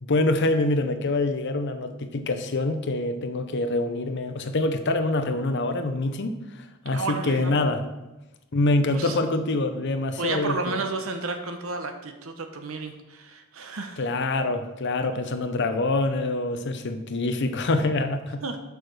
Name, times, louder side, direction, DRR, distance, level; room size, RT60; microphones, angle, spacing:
voice 1, 0.0-6.4 6.8-7.9 8.5-10.8 14.0-18.4, left 2 dB, 55° left, 8 dB, 0.7 m, -25 dB
voice 2, 6.9-7.5 8.9-9.2 10.2-14.0 18.4-18.6, right 3 dB, 70° right, 6 dB, 0.9 m, -32 dB
6.5 x 5.0 x 6.1 m, 1.0 s
head